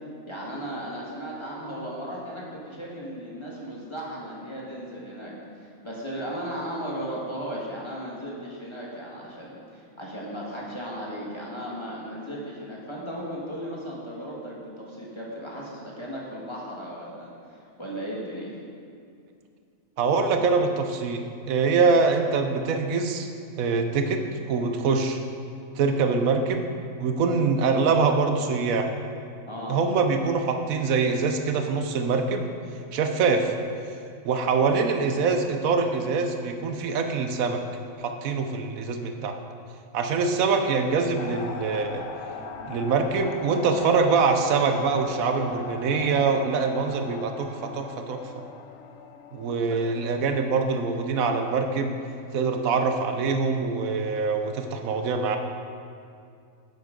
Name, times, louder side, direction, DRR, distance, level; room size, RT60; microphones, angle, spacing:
voice 1, 0.3-18.6 29.5-29.8, equal, 20° left, -5 dB, 1.6 m, -36 dB
voice 2, 20.0-23.3 23.6-24.2 24.5-25.2 25.8-26.6 27.0-28.9 29.7-32.5 32.9-33.5 34.2-37.6 38.0-39.4 39.9-42.0 42.7-48.2 49.3-51.9 52.3-55.4, right 4 dB, 80° right, 5 dB, 1.1 m, -24 dB
sound 1, 41.2-50.2, left 5 dB, 70° left, 1.0 m, -39 dB
10.5 x 7.9 x 3.8 m, 2.4 s
omnidirectional pair, 1.5 m